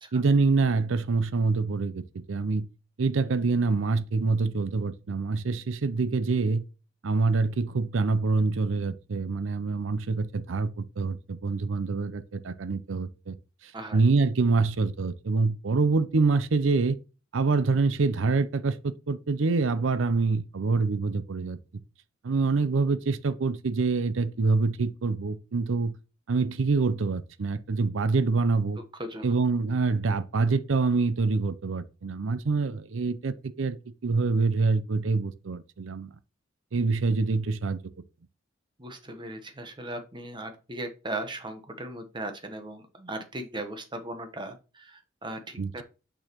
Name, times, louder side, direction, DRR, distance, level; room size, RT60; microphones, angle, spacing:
voice 1, 0.1-2.7 3.0-6.6 7.0-13.4 13.6-17.0 17.3-21.6 22.2-26.0 26.3-28.8 29.2-33.8 34.0-36.1 36.7-37.8 45.6-45.8, right 4 dB, 70° right, 0.6 m, -26 dB
voice 2, 38.8-45.8, right 1 dB, 25° right, 1.0 m, -38 dB
6.3 x 6.3 x 3.0 m
head